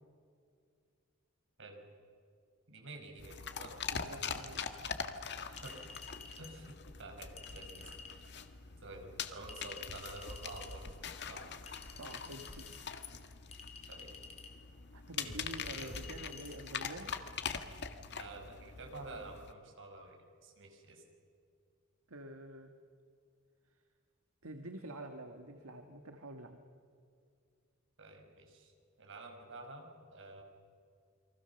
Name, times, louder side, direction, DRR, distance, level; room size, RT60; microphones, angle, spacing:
voice 1, 2.7-3.7 5.4-5.8 6.4-7.9 8.8-10.9 11.3-11.4 13.9-14.1 15.2-16.0 18.1-21.0 28.0-30.4, right 2 dB, 65° right, 3 dB, 5.4 m, -50 dB
sound 1, 3.2-19.5, left 6 dB, 55° left, 1.7 m, -43 dB
voice 2, 3.9-4.6 12.0-12.8 14.9-17.1 22.1-22.7 24.4-26.6, right 1 dB, 80° right, 5 dB, 1.7 m, -47 dB
Chink clink, 5.6-6.5 7.4-8.2 9.5-10.7 11.7-12.8 13.5-14.5 15.5-16.6, left 4 dB, 30° left, 3.4 m, -51 dB
29.5 x 23.5 x 7.1 m, 2.3 s
head